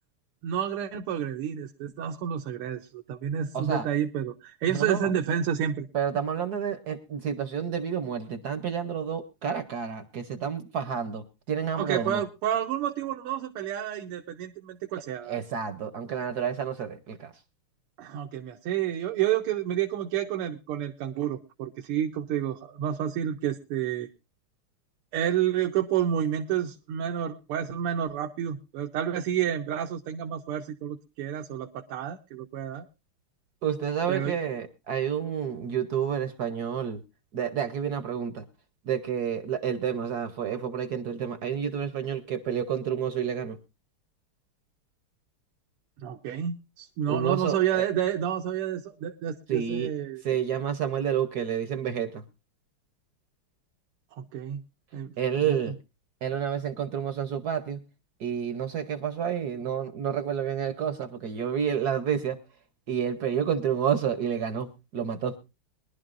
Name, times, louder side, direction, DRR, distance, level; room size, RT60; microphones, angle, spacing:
voice 1, 0.4-2.8 3.1-5.9 11.8-15.4 18.0-24.1 25.1-32.8 34.1-34.3 46.0-50.2 54.1-54.6 54.9-55.1 55.4-55.6, right 10 dB, 85° right, 3 dB, 1.7 m, -29 dB
voice 2, 3.5-3.9 4.7-5.1 5.9-12.2 15.2-17.3 33.6-37.0 37.3-38.4 38.8-43.6 47.1-47.8 49.5-49.9 50.2-52.2 55.2-55.7 56.2-57.8 58.2-62.4 62.9-65.3, right 8 dB, 60° right, 10 dB, 1.1 m, -29 dB
22.0 x 11.5 x 2.5 m, 0.26 s
omnidirectional pair, 2.4 m